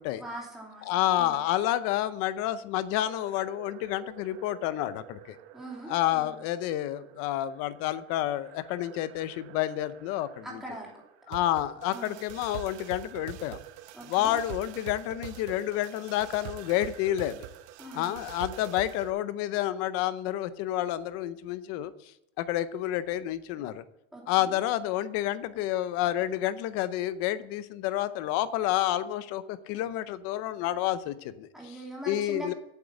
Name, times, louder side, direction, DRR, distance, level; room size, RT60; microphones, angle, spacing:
voice 1, 0.2-0.9 1.2-1.3 5.5-6.3 10.4-10.9 11.9-12.1 13.9-14.3 17.8-18.1 24.1-24.5 31.5-32.5, right 1 dB, ahead, -3 dB, 2.7 m, -41 dB
voice 2, 0.9-5.4 5.9-10.6 11.3-13.6 14.1-17.5 17.9-21.9 22.4-23.8 24.3-31.8 32.1-32.5, left 13 dB, 45° left, 14 dB, 0.7 m, -29 dB
sound 1, 3.1-19.1, right 12 dB, 75° right, 1.0 m, -46 dB
8.3 x 8.2 x 7.1 m, 0.85 s
cardioid pair, 170°, 33 cm